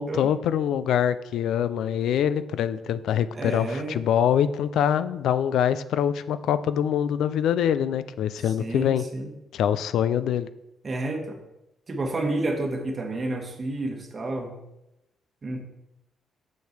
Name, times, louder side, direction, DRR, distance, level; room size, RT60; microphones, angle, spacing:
voice 1, 0.0-9.0 9.5-10.5, left 9 dB, 80° left, 14 dB, 0.3 m, -24 dB
voice 2, 3.3-4.0 8.4-9.3 10.8-11.4 11.9-14.6 15.4-15.6, right 2 dB, 35° right, 3 dB, 1.3 m, -30 dB
6.5 x 6.4 x 3.2 m, 0.89 s
cardioid pair, 90°, 0 cm